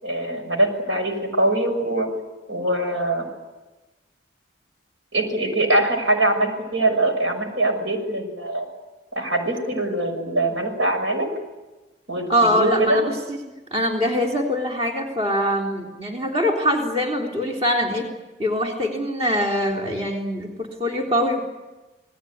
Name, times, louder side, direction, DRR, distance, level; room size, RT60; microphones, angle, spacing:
voice 1, 0.0-2.1 2.5-3.3 5.1-8.7 9.1-11.3 12.1-12.3 12.5-13.0, right 1 dB, 90° right, 5 dB, 6.3 m, -22 dB
voice 2, 12.3-13.4 13.7-18.1 18.4-21.4, equal, 35° right, 0 dB, 3.6 m, -23 dB
28.5 x 19.5 x 9.5 m, 1.1 s
head